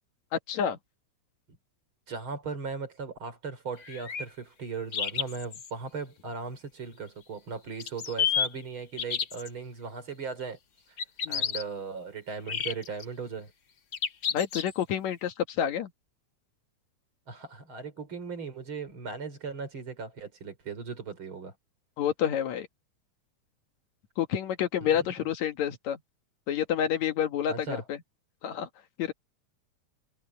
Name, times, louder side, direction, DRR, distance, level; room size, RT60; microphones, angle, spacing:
voice 1, 0.5-0.8 11.3-11.4 14.3-15.9 22.0-22.7 24.2-26.0 26.5-28.0 28.4-28.7 29.0-29.1, left 9 dB, 70° left, 2.7 m, -29 dB
voice 2, 2.1-10.6 11.3-13.5 17.3-21.5 24.8-25.1 27.5-27.8, right 5 dB, 40° right, 4.6 m, -38 dB
sound 1, 3.8-4.2 4.9-5.7 7.8-8.5 9.0-9.5 11.0-11.6 12.5-13.0 13.9-14.8, left 7 dB, 45° left, 1.5 m, -30 dB
omnidirectional pair, 3.4 m